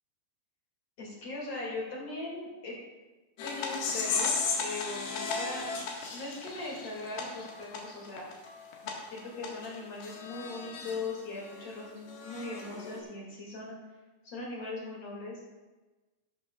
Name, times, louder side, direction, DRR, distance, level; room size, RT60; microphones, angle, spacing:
voice 1, 1.0-2.8 3.4-5.7 6.1-8.2 9.1-13.7 14.2-15.4, left 2 dB, 45° left, -4 dB, 2.9 m, -39 dB
sound 1, 3.4-11.0 11.4-13.0, left 5 dB, 75° left, 3.4 m, -35 dB
14.5 x 12.0 x 2.3 m, 1.2 s
omnidirectional pair, 4.5 m